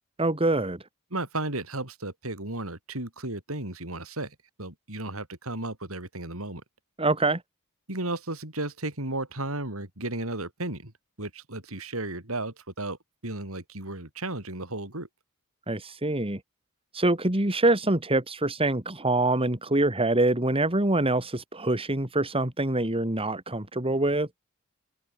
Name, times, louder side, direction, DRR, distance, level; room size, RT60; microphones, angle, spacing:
voice 1, 0.2-0.8 7.0-7.4 15.7-16.4 16.9-24.3, right 2 dB, 25° right, 2.7 m, -25 dB
voice 2, 1.1-6.6 7.9-10.9 11.2-13.0 13.2-15.1, right 2 dB, 70° right, 6.1 m, -34 dB
open air
head